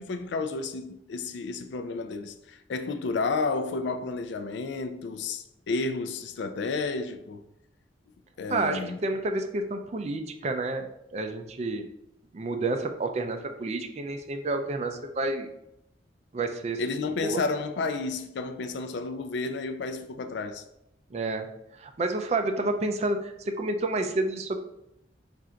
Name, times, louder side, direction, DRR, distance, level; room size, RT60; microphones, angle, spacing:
voice 1, 0.0-7.4 8.4-9.0 16.8-20.6, left 3 dB, 70° left, 0.3 m, -31 dB
voice 2, 8.5-11.9 12.3-15.5 16.3-16.8 17.2-17.4 21.1-21.5 21.8-24.6, right 2 dB, 35° right, 0.3 m, -29 dB
3.7 x 2.5 x 4.3 m
head